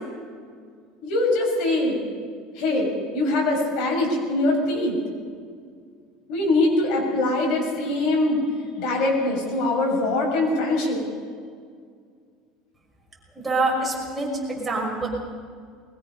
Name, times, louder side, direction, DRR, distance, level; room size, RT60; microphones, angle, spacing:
voice 1, 1.0-2.0 2.5-5.0 6.3-8.4 8.8-11.0, left 2 dB, 60° left, 0 dB, 6.8 m, -23 dB
voice 2, 13.4-15.1, right 2 dB, 10° right, -2 dB, 5.9 m, -25 dB
22.0 x 21.0 x 5.8 m, 2.1 s
cardioid pair, 145°, 0 cm